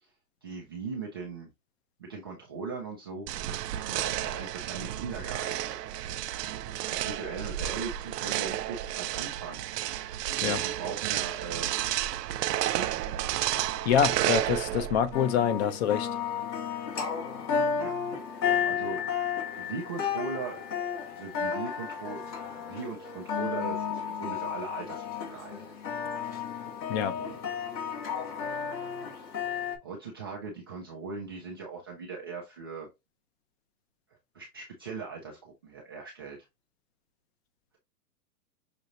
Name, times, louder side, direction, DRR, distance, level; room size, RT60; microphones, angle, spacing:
voice 1, 0.4-1.5 2.0-5.7 6.9-9.6 9.9-11.7 12.7-12.9 17.8-18.0 18.6-19.1 19.5-20.7 21.1-25.6 27.1-27.4 29.8-32.9 34.3-36.4, right 4 dB, 15° right, 0.3 m, -39 dB
sound 1, 3.3-15.2, right 13 dB, 70° right, 0.7 m, -31 dB
voice 2, 13.8-16.1 26.9-27.2, left 8 dB, 40° left, 0.8 m, -26 dB
sound 2, 15.1-29.8, left 7 dB, 90° left, 2.2 m, -33 dB
6.4 x 2.9 x 2.6 m
hypercardioid pair, 140°, 50 cm